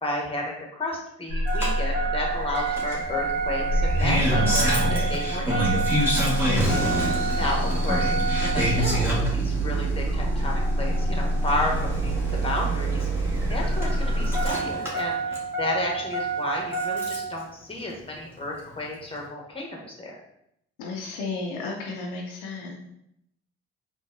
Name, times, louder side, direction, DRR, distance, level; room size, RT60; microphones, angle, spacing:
voice 1, 0.0-5.9 7.3-8.1 8.4-12.1 12.4-20.1, left 2 dB, 20° left, -1 dB, 1.1 m, -32 dB
sound 1, 1.3-14.5, right 1 dB, 80° right, 0.7 m, -27 dB
Engine starting, 1.5-17.4 18.6-18.7, right 2 dB, 10° right, 1.2 m, -27 dB
sound 2, 3.0-5.7, right 1 dB, 35° right, 0.8 m, -31 dB
voice 2, 6.4-7.2 20.8-22.8, left 3 dB, 85° left, 0 dB, 0.6 m, -33 dB
3.9 x 2.4 x 2.4 m, 0.76 s
hypercardioid pair, 50°, 29 cm